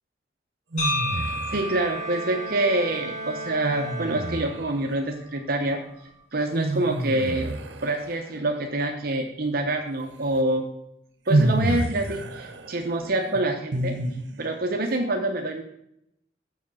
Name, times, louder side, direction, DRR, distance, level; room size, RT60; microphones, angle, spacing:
sound 1, 0.7-1.9 3.6-4.8 6.5-8.5 10.4-10.5 11.3-14.6, right 1 dB, 90° right, 0.9 m, -28 dB
sound 2, 0.8-4.8, equal, 45° left, 4.2 m, -33 dB
voice 1, 1.1-5.8 6.3-7.5 7.8-10.6 11.3-14.0 14.4-15.6, right 2 dB, 55° right, 3 dB, 0.8 m, -26 dB
Bowed string instrument, 1.5-5.0, right 1 dB, 40° right, 1.8 m, -37 dB
7.1 x 6.5 x 6.0 m, 0.78 s
head